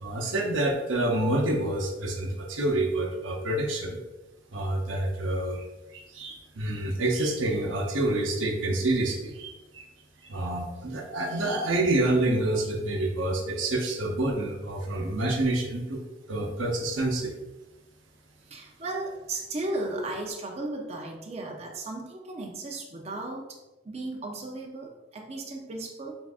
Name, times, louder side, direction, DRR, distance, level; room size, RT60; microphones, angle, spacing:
voice 1, 0.0-4.0 4.5-5.6 5.9-9.8 10.3-16.0 16.3-17.3, right 1 dB, 85° right, 3 dB, 0.7 m, -27 dB
voice 2, 18.4-23.6 23.8-26.2, right 2 dB, 35° right, 0 dB, 0.5 m, -35 dB
7.0 x 2.5 x 2.4 m, 1.0 s
head